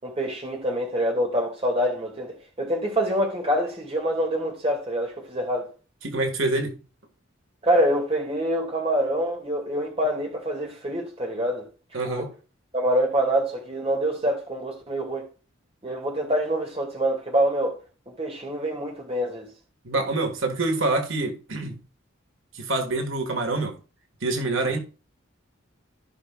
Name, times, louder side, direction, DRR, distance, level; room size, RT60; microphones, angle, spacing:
voice 1, 0.0-5.7 7.6-11.7 12.1-12.3 12.7-15.3 15.8-17.8 18.1-19.5 24.6-24.7, equal, 30° right, 2.3 m, -26 dB
voice 2, 6.0-6.8 11.9-12.3 19.8-21.8 22.5-23.7 24.2-24.8, right 2 dB, 80° right, 2.0 m, -26 dB
15.0 x 6.0 x 2.4 m
head